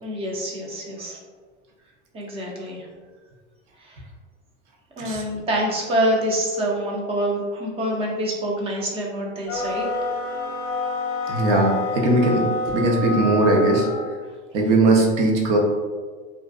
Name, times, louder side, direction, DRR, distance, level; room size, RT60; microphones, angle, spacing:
voice 1, 0.0-1.2 2.1-2.9 3.8-4.0 5.0-9.9, right 1 dB, 20° right, -2 dB, 0.3 m, -26 dB
sound 1, 9.5-14.1, left 3 dB, 40° left, 0.6 m, -28 dB
voice 2, 11.3-13.9 14.5-15.6, right 2 dB, 80° right, -1 dB, 0.8 m, -19 dB
2.5 x 2.3 x 2.3 m, 1.5 s
supercardioid pair, 125°, 35 cm